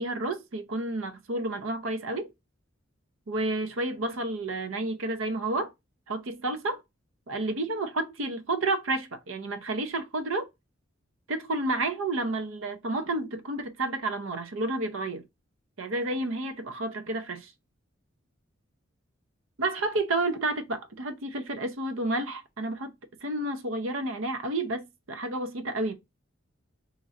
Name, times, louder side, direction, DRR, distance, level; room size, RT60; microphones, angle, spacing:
voice 1, 0.0-2.3 3.3-5.7 6.1-6.8 7.3-10.5 11.3-15.2 15.8-17.5 19.6-22.9 23.2-25.9, right 2 dB, 90° right, 0.7 m, -30 dB
3.0 x 2.5 x 4.0 m
head